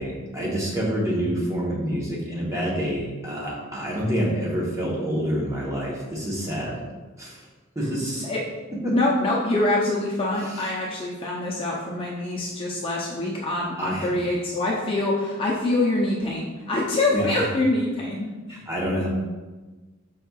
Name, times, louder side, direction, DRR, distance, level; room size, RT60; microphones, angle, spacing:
voice 1, 0.0-6.8 7.2-7.5 7.7-8.3 8.8-8.9 10.5-10.7 13.8-14.1 17.1-17.5 18.5-19.1, equal, 15° right, -4 dB, 0.9 m, -27 dB
voice 2, 8.9-18.6, left 2 dB, 25° left, -4 dB, 0.5 m, -25 dB
5.5 x 4.2 x 2.3 m, 1.3 s
head